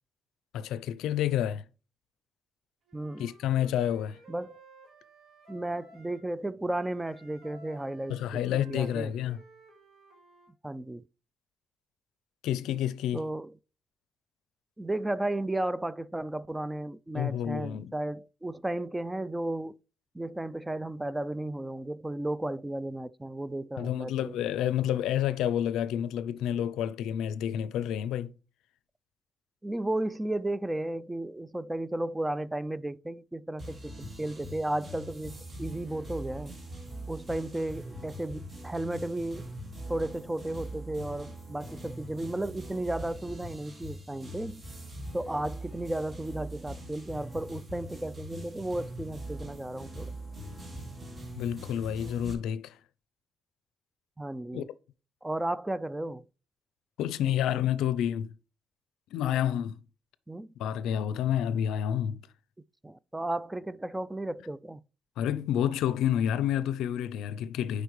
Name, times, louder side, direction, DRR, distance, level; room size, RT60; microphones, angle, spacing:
voice 1, 0.5-1.6 3.2-4.2 8.1-9.4 12.4-13.2 17.1-17.9 23.8-28.3 51.3-52.8 54.5-54.6 57.0-58.3 59.1-59.8 60.6-62.2 65.2-67.8, left 10 dB, 85° left, 0.4 m, -29 dB
voice 2, 2.9-3.3 4.3-4.6 5.5-9.1 10.6-11.0 13.1-13.5 14.8-19.8 20.1-24.4 29.6-36.5 37.1-39.5 39.9-44.6 45.1-50.1 54.2-54.7 55.2-56.3 60.3-60.5 62.8-64.8, right 1 dB, 10° right, 0.3 m, -34 dB
Wind instrument woodwind instrument, 2.9-6.2 6.7-10.5, right 2 dB, 60° right, 2.4 m, -56 dB
sound 1, 33.6-52.3, right 1 dB, 30° right, 1.8 m, -42 dB
7.9 x 5.1 x 3.1 m
cardioid pair, 90°, 0 cm